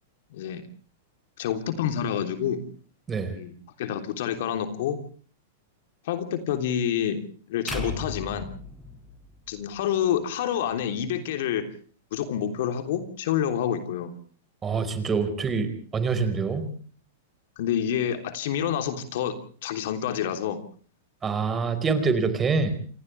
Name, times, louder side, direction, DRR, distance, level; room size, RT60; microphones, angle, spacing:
voice 1, 0.3-0.6 1.4-2.6 3.3-5.0 6.0-7.2 7.5-8.5 9.5-11.7 12.1-14.1 17.6-19.3 19.6-20.6, left 9 dB, 65° left, 7 dB, 3.3 m, -28 dB
sound 1, 7.7-9.9, left 1 dB, ahead, 5.2 m, -36 dB
voice 2, 14.6-16.7 21.2-22.7, right 5 dB, 20° right, 10 dB, 4.7 m, -25 dB
29.0 x 26.5 x 3.4 m, 0.43 s
hypercardioid pair, 110°, 0 cm